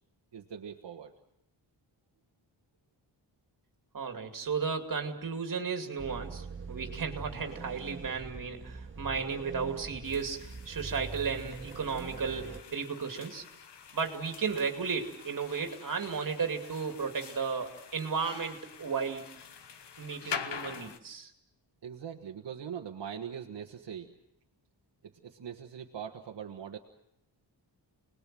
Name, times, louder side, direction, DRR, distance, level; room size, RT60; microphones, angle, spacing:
voice 1, 0.3-1.1 21.8-24.1 25.0-26.8, right 8 dB, 70° right, 2 dB, 1.5 m, -42 dB
voice 2, 3.9-13.4 13.9-19.3 20.0-21.3, right 5 dB, 45° right, 5 dB, 2.6 m, -34 dB
sound 1, 6.0-12.6, right 4 dB, 25° right, 1.9 m, -43 dB
sound 2, 10.0-21.0, left 7 dB, 65° left, 1.3 m, -45 dB
29.0 x 20.0 x 7.6 m, 0.83 s
wide cardioid pair, 175°, 44 cm